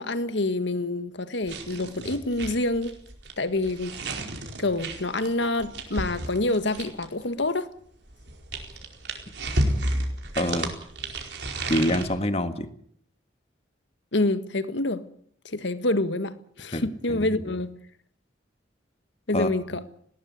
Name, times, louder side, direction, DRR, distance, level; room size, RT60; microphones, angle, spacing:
voice 1, 0.0-3.0 3.4-4.0 4.6-7.7 14.1-15.0 15.5-17.7 19.3-19.8, left 2 dB, 75° left, 1.7 m, -27 dB
sound 1, 1.4-7.2 8.1-12.0, right 1 dB, 65° right, 4.6 m, -32 dB
voice 2, 10.4-10.7 11.7-12.7 16.7-16.8 17.1-17.6 19.3-19.5, left 1 dB, 35° left, 1.8 m, -26 dB
19.5 x 18.0 x 9.6 m
head